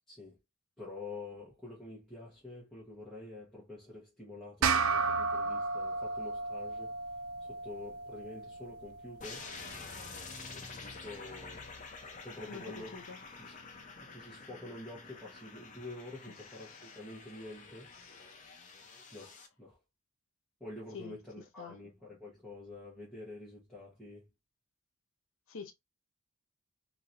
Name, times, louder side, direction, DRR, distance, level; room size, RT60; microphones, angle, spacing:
voice 1, 0.1-0.4 0.8-7.0 7.4-9.5 10.5-11.7 12.2-12.9 13.4-13.6 14.0-17.9 19.1-19.8 20.6-24.3, left 2 dB, ahead, 1.2 m, -47 dB
sound 1, 4.6-9.4, right 4 dB, 75° right, 0.4 m, -33 dB
sound 2, 9.2-19.5, left 4 dB, 35° left, 0.7 m, -49 dB
sound 3, 9.4-12.5, left 1 dB, 35° right, 1.3 m, -53 dB
voice 2, 12.5-13.2 16.7-16.9 18.0-18.1 20.9-21.2 21.6-21.8 25.5-25.7, left 5 dB, 70° left, 0.7 m, -46 dB
3.0 x 2.8 x 2.6 m
head